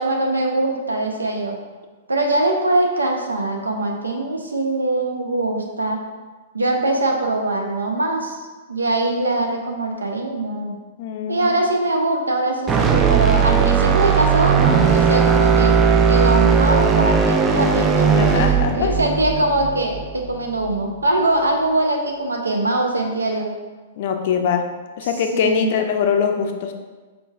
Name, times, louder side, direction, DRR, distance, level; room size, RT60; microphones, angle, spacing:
voice 1, 0.0-1.5 2.1-6.0 6.5-10.7 11.3-15.8 16.1-23.5 25.3-25.7, right 2 dB, 80° right, 2 dB, 0.6 m, -22 dB
voice 2, 11.0-11.6 18.1-18.9 24.0-24.6 25.0-26.7, left 7 dB, 50° left, 5 dB, 0.4 m, -22 dB
sound 1, 12.7-20.8, right 6 dB, 20° right, 0.4 m, -17 dB
4.6 x 3.8 x 2.4 m, 1.3 s
figure-of-eight pair, 105°, 0 cm